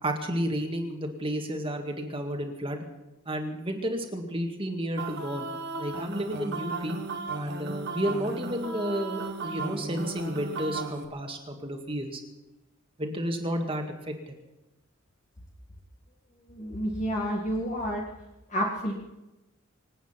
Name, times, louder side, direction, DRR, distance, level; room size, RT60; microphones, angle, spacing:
voice 1, 0.0-2.8 3.3-5.5 5.8-7.0 7.3-12.2 13.0-14.3, equal, 25° right, 3 dB, 2.0 m, -32 dB
sound 1, 5.0-11.1, right 3 dB, 55° right, 1.7 m, -35 dB
voice 2, 16.5-18.0 18.5-18.9, equal, 35° left, -2 dB, 1.9 m, -29 dB
25.5 x 9.1 x 5.9 m, 1.0 s
head